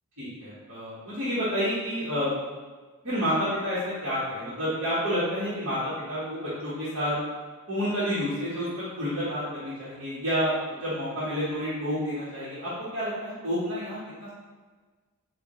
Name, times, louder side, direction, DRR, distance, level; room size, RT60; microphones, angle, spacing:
voice 1, 0.2-2.3 3.0-7.1 7.7-14.3, equal, 65° right, -12 dB, 1.3 m, -29 dB
4.7 x 2.5 x 3.0 m, 1.4 s
head